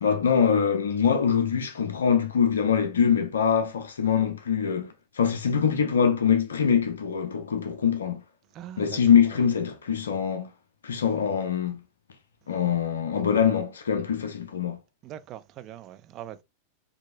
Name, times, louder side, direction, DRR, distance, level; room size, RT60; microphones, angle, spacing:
voice 1, 0.0-8.2 8.8-10.5 10.8-11.8 12.5-14.8, left 7 dB, 70° left, 0.5 m, -24 dB
voice 2, 8.5-9.0 15.0-16.4, right 11 dB, 35° right, 0.4 m, -41 dB
4.5 x 2.8 x 2.4 m
figure-of-eight pair, 90°, 0 cm